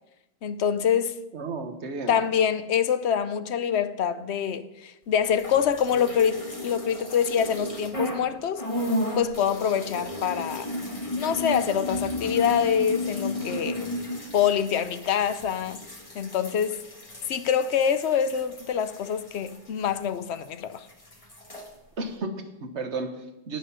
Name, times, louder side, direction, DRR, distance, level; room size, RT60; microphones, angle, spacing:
voice 1, 0.4-1.2 2.1-8.6 9.2-10.7 11.2-13.9 14.3-15.8 16.1-16.8 17.3-20.9, left 8 dB, 80° left, 1.0 m, -25 dB
voice 2, 1.3-2.2 21.5-21.7 22.0-23.6, right 3 dB, 90° right, 1.5 m, -33 dB
sound 1, 5.3-8.3 8.6-20.5 20.7-21.7, left 1 dB, 30° left, 1.8 m, -34 dB
18.0 x 6.4 x 5.6 m
omnidirectional pair, 1.1 m